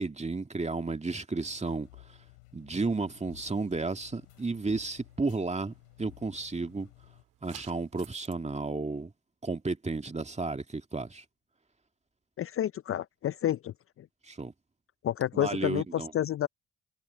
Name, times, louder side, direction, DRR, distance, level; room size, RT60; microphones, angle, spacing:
voice 1, 0.0-2.2 2.5-6.9 7.4-9.1 9.4-11.2 14.2-14.5 15.3-16.1, right 3 dB, 20° right, 2.1 m, -33 dB
sound 1, 1.5-7.2, left 25 dB, 90° left, 3.3 m, -56 dB
sound 2, 3.2-8.4, right 17 dB, 75° right, 2.3 m, -57 dB
voice 2, 12.4-14.1 15.0-16.5, left 11 dB, 45° left, 0.5 m, -30 dB
hypercardioid pair, 50°, 32 cm